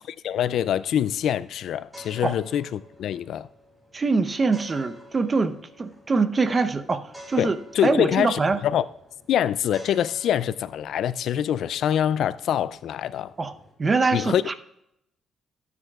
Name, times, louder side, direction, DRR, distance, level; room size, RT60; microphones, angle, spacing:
voice 1, 0.2-3.5 7.4-8.8 9.3-13.3 14.1-14.4, left 10 dB, 75° left, 0.4 m, -25 dB
sound 1, 0.5-13.7, equal, 10° right, 4.6 m, -50 dB
voice 2, 3.9-8.6 13.4-13.5 13.8-14.5, right 4 dB, 30° right, 0.9 m, -24 dB
21.0 x 9.5 x 2.4 m
cardioid pair, 90°, 0 cm